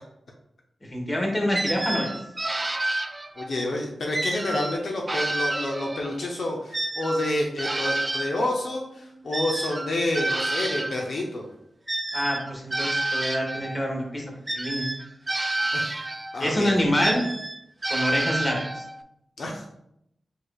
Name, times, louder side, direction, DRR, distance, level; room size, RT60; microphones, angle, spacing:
voice 1, 0.8-2.1 12.1-14.2 14.5-14.9 16.4-17.3 17.9-18.8, equal, 25° left, 0 dB, 1.4 m, -26 dB
sound 1, 1.5-3.6 4.1-6.2 6.7-11.1 11.9-13.8 14.5-16.4 17.0-19.0, right 2 dB, 25° right, 0.3 m, -29 dB
voice 2, 3.4-11.4 15.7-15.9 16.3-16.7 19.4-19.7, left 1 dB, 75° left, 0 dB, 0.7 m, -29 dB
4.8 x 4.5 x 2.4 m, 0.78 s
wide cardioid pair, 75°, 0 cm